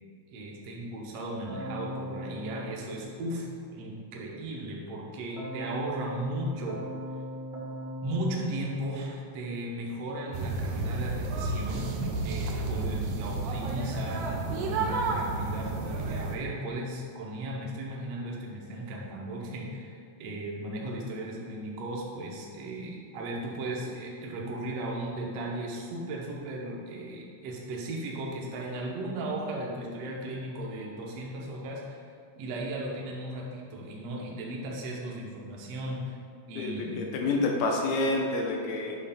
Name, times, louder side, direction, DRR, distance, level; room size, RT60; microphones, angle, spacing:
voice 1, 0.3-6.8 8.0-11.9 12.2-32.0 32.3-36.2 36.5-37.4, right 1 dB, 65° right, -2 dB, 1.7 m, -36 dB
Keyboard (musical), 1.5-3.8 5.4-9.6, equal, 40° right, 0.7 m, -40 dB
sound 1, 10.3-16.3, right 3 dB, 85° right, 1.3 m, -31 dB
voice 2, 36.5-39.0, left 2 dB, 75° left, 1 dB, 1.8 m, -28 dB
8.8 x 3.1 x 5.5 m, 2.3 s
omnidirectional pair, 3.7 m